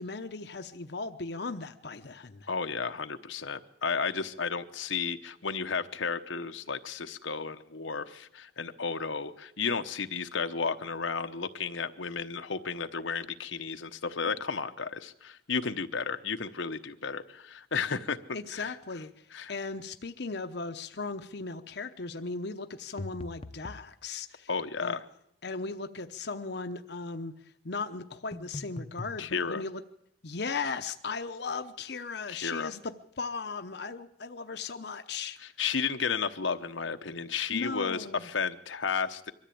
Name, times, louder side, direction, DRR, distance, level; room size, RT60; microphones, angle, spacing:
voice 1, 0.0-2.5 18.3-24.5 24.8-25.0 25.4-29.8 30.2-35.4 37.5-38.3, left 4 dB, 60° left, 7 dB, 0.8 m, -37 dB
voice 2, 2.5-18.2 18.5-18.7 19.3-19.5 24.5-25.0 29.2-29.6 32.3-32.7 35.6-39.3, left 5 dB, 85° left, 7 dB, 1.0 m, -33 dB
sound 1, 23.0-23.9 28.3-29.2, left 2 dB, 30° left, 0.7 m, -41 dB
23.0 x 13.5 x 8.5 m, 0.75 s
head